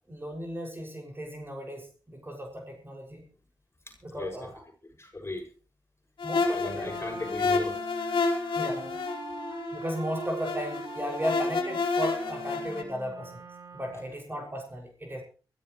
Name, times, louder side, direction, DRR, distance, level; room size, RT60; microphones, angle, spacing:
voice 1, 0.1-3.2 4.0-4.6 6.2-6.9 8.5-9.0 9.7-13.4 13.7-15.2, equal, 25° right, 1 dB, 6.2 m, -35 dB
voice 2, 3.8-4.5 5.0-5.5 6.4-7.8 14.0-14.1, left 2 dB, 30° left, 2 dB, 6.4 m, -38 dB
sound 1, 6.2-12.8, left 4 dB, 80° left, 2.8 m, -30 dB
Wind instrument woodwind instrument, 6.8-14.2, right 3 dB, 55° right, 2.7 m, -43 dB
23.5 x 14.5 x 3.2 m, 0.37 s
cardioid pair, 45°, 8 cm